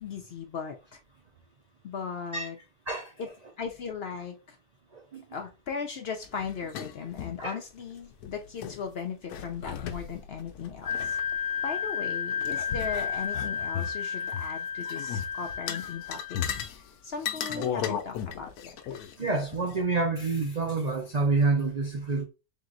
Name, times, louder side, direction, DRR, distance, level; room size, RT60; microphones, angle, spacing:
voice 1, 0.0-1.0 1.8-2.6 3.2-3.3 3.6-4.6 5.3-11.2 11.6-18.7, left 6 dB, 65° left, 0.6 m, -37 dB
voice 2, 4.9-5.2 7.4-7.6 17.6-17.7 19.2-22.2, right 3 dB, 70° right, 0.3 m, -28 dB
sound 1, 6.3-7.4 7.8-7.9 8.1-8.8 9.3-11.9 12.3-14.5 14.8-15.3 15.7-16.8 17.2-19.8, left 8 dB, 85° left, 1.1 m, -35 dB
Wind instrument woodwind instrument, 10.8-16.6, left 7 dB, 15° right, 1.0 m, -32 dB
3.6 x 2.8 x 3.9 m
omnidirectional pair, 1.6 m